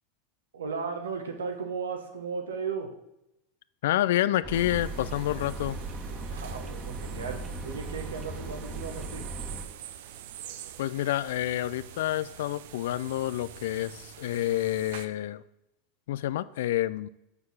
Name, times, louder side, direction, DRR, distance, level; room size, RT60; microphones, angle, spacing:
voice 1, 0.5-2.9 6.3-9.3, right 5 dB, 85° right, 5 dB, 1.1 m, -35 dB
voice 2, 3.8-5.8 10.8-15.4 16.1-17.1, left 13 dB, 70° left, 17 dB, 0.3 m, -28 dB
sound 1, 4.4-9.6, right 3 dB, 20° right, 1.3 m, -38 dB
sound 2, 4.5-15.1, right 11 dB, 70° right, 0.5 m, -46 dB
6.6 x 4.7 x 5.5 m, 0.85 s
hypercardioid pair, 95°, 0 cm